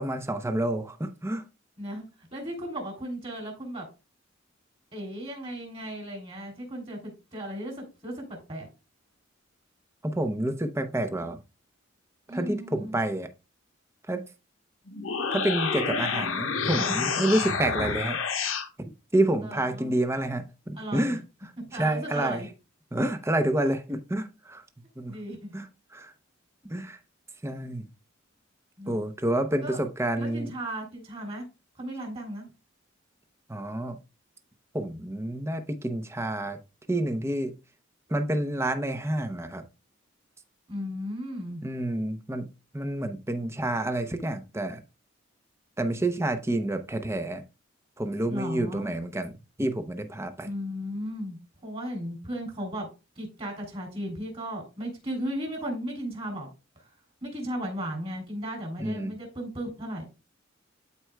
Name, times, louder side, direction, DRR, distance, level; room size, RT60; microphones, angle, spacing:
voice 1, 0.0-1.4 10.0-11.4 12.3-13.3 14.1-14.2 15.3-18.2 19.1-21.2 21.7-22.4 22.9-24.6 25.0-25.1 25.5-25.7 25.9-26.1 26.6-27.0 27.4-27.8 28.9-30.5 33.5-34.0 34.7-36.6 36.9-37.5 38.1-39.6 41.6-42.5 42.7-44.8 45.8-47.4 48.0-49.3 49.6-50.5 58.8-59.1, right 1 dB, 15° right, 0.7 m, -28 dB
voice 2, 2.3-3.9 4.9-8.2 8.5-8.7 12.3-13.0 19.4-19.9 20.8-21.2 21.7-22.5 25.1-25.5 28.8-29.0 29.6-29.8 30.2-31.5 31.8-32.5 40.7-41.6 48.3-48.9 50.4-52.9 53.2-56.5 57.2-60.0, equal, 30° right, 3.1 m, -35 dB
sound 1, 14.9-18.7, left 5 dB, 85° left, 1.2 m, -29 dB
12.5 x 4.4 x 2.3 m
head